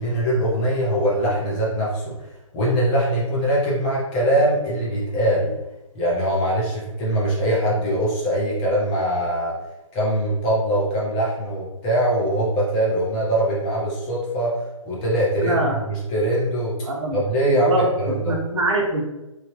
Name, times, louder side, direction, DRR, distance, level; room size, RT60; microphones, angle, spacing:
voice 1, 0.0-2.1 2.5-5.5 5.9-9.6 9.9-14.6 14.8-18.4, right 1 dB, 20° left, -5 dB, 0.7 m, -22 dB
voice 2, 15.4-15.7 16.9-19.0, right 1 dB, 60° right, -1 dB, 0.9 m, -24 dB
3.1 x 2.3 x 3.0 m, 0.97 s
figure-of-eight pair, 145°, 17 cm